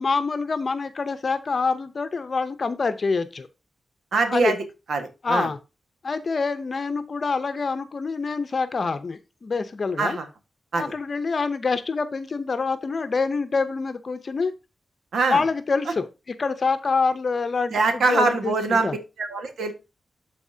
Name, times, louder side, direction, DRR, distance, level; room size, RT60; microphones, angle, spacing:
voice 1, 0.0-3.5 4.3-4.5 5.2-5.6 6.0-10.2 10.7-14.5 15.3-19.0, left 4 dB, 45° left, 10 dB, 0.7 m, -26 dB
voice 2, 4.1-4.6 4.9-5.5 10.0-10.2 10.7-10.8 15.1-15.4 17.7-18.9 19.2-19.7, right 3 dB, 85° right, 6 dB, 1.5 m, -23 dB
12.5 x 4.2 x 2.7 m, 0.27 s
wide cardioid pair, 110°, 0 cm